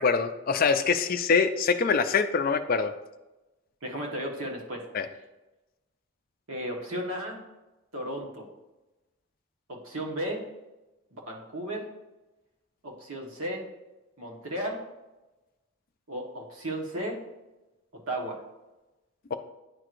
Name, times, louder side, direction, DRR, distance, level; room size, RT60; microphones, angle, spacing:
voice 1, 0.0-2.9 4.9-5.1, left 5 dB, 40° left, 8 dB, 0.4 m, -24 dB
voice 2, 3.8-4.8 6.5-7.4 7.9-8.5 9.7-10.4 11.1-11.9 12.8-13.7 14.2-14.8 16.1-17.2 18.1-18.4, right 1 dB, 70° right, 0 dB, 1.3 m, -34 dB
9.6 x 4.6 x 2.5 m, 1.1 s
head